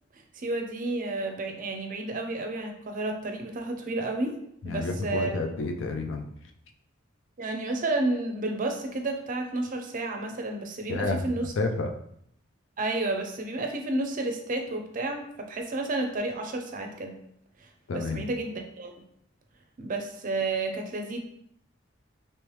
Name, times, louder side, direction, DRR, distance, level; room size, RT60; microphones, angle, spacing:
voice 1, 0.1-4.4 4.6-5.4 7.4-11.5 12.8-17.2 17.6-18.9 19.8-21.2, right 2 dB, 45° right, 4 dB, 0.5 m, -31 dB
voice 2, 4.6-6.3 10.9-11.3 11.6-11.9 17.9-18.2, left 3 dB, 75° left, 5 dB, 0.4 m, -30 dB
3.1 x 3.0 x 3.1 m, 0.72 s
head